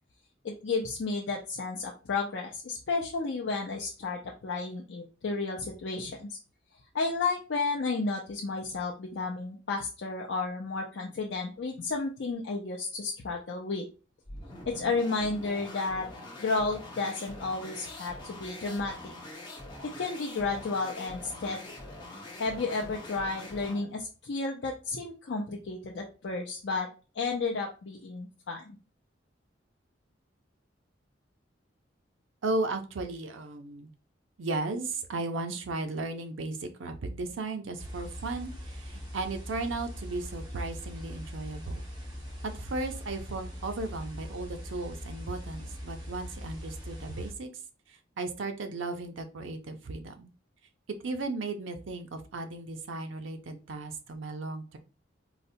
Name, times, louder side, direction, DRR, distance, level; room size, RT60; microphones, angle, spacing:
voice 1, 0.4-6.4 6.9-13.8 14.7-16.1 16.4-18.9 19.8-21.7 22.4-26.9 27.2-28.8, left 3 dB, 70° left, -1 dB, 0.5 m, -32 dB
sound 1, 14.2-23.9, left 2 dB, 25° left, 0.9 m, -44 dB
voice 2, 32.4-33.9 34.4-41.8 42.4-47.5 47.9-50.3 51.0-54.8, right 3 dB, 90° right, 7 dB, 0.5 m, -35 dB
sound 2, 37.8-47.3, equal, 25° right, 1.1 m, -41 dB
3.9 x 2.1 x 2.6 m, 0.33 s
head